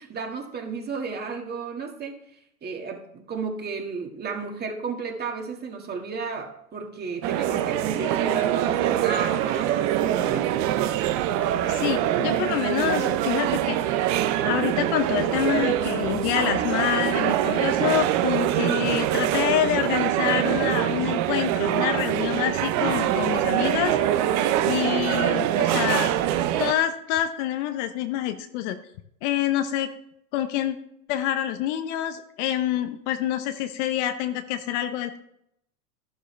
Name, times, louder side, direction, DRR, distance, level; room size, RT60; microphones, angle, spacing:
voice 1, 0.0-2.2 2.6-10.5, right 4 dB, 20° right, 2 dB, 2.0 m, -33 dB
sound 1, 7.2-26.7, right 12 dB, 40° right, 0.9 m, -24 dB
voice 2, 11.7-13.8 14.4-24.0 24.6-26.1 26.6-28.8 29.2-29.9 30.3-30.8 31.1-35.2, left 11 dB, 50° left, 9 dB, 1.0 m, -27 dB
12.0 x 12.0 x 3.4 m, 0.76 s
hypercardioid pair, 115°, 45 cm